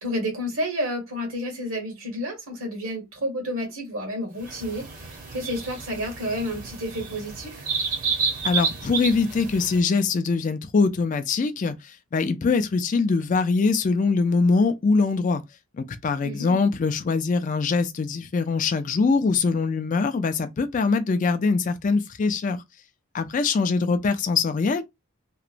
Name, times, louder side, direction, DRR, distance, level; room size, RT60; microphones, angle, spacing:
voice 1, 0.0-7.7 16.2-16.6, equal, 70° right, 1.2 m, -30 dB
sound 1, 4.4-9.8, right 5 dB, 40° right, 0.7 m, -30 dB
voice 2, 8.4-15.4 15.7-22.6 23.1-24.8, left 4 dB, 35° left, 0.3 m, -23 dB
2.9 x 2.1 x 2.4 m
head